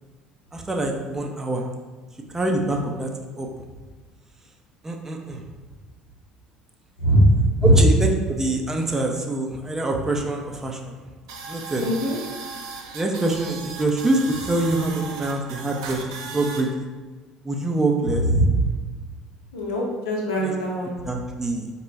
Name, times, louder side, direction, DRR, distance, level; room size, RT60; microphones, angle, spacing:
voice 1, 0.5-1.6 2.3-3.1 3.4-3.5 4.8-5.4 7.6-10.9 11.5-11.8 12.9-16.9 17.4-18.2 20.4-20.5 21.0-21.7, right 2 dB, 15° right, 1 dB, 0.5 m, -25 dB
voice 2, 7.0-7.7 11.8-12.2 18.2-18.6 19.5-20.9, right 1 dB, 70° left, -3 dB, 0.8 m, -20 dB
sound 1, 11.3-16.6, right 4 dB, 70° right, 0.4 m, -37 dB
4.0 x 2.2 x 3.2 m, 1.3 s
figure-of-eight pair, 60°, 3 cm